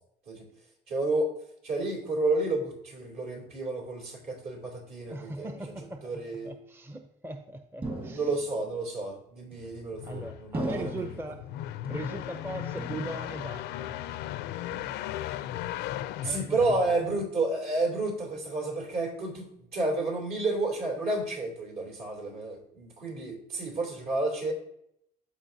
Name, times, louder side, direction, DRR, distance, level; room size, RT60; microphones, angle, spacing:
voice 1, 0.9-1.3 1.6-5.5 6.0-6.5 8.0-10.9 16.2-24.5, right 2 dB, 65° right, 0 dB, 3.1 m, -31 dB
voice 2, 5.1-8.3 10.1-11.5 11.9-14.0 16.2-17.1, right 2 dB, 15° right, 6 dB, 0.6 m, -40 dB
sound 1, 7.8-8.7 9.5-10.0 10.5-11.3 11.8-12.5 12.8-13.5 13.8-14.3 14.7-15.3, right 2 dB, 30° right, 1.8 m, -39 dB
sound 2, 9.6-17.2, left 13 dB, 85° left, 0.4 m, -37 dB
13.0 x 4.6 x 2.7 m, 0.74 s
cardioid pair, 110°, 17 cm